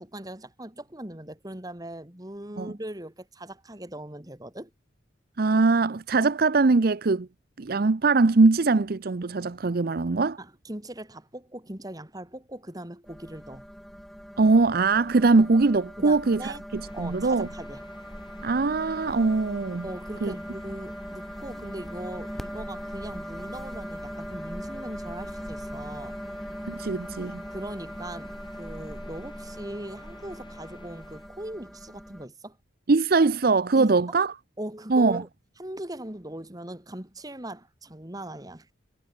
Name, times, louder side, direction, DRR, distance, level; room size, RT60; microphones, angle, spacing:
voice 1, 0.0-4.7 10.4-13.6 16.0-16.6 16.9-17.9 19.8-26.2 27.5-32.6 33.7-33.9 34.6-35.3 35.6-38.7, right 1 dB, 20° right, 2.3 m, -39 dB
voice 2, 5.4-7.3 7.6-10.4 14.4-17.5 18.4-19.9 20.2-20.3 26.7-27.4 32.9-34.3 34.9-35.2, right 3 dB, 50° right, 0.6 m, -22 dB
Droid Hum, 13.1-32.3, equal, ahead, 1.0 m, -40 dB
sound 1, 16.8-31.3, left 2 dB, 25° left, 6.0 m, -53 dB
head